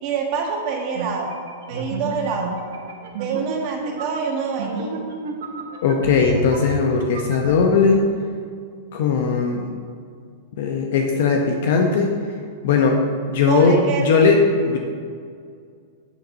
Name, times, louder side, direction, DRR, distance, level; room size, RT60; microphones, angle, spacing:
voice 1, 0.0-1.3 1.7-2.5 3.2-5.0 13.5-14.1, right 6 dB, 50° right, 0 dB, 1.4 m, -26 dB
sound 1, 0.9-7.5, right 3 dB, 80° right, 0.9 m, -31 dB
voice 2, 5.8-8.1 8.9-9.7 10.6-12.2 12.6-13.0 13.3-13.8 14.0-14.8, left 5 dB, 70° left, 2 dB, 0.8 m, -18 dB
8.3 x 3.9 x 6.2 m, 2.2 s
supercardioid pair, 140°, 0 cm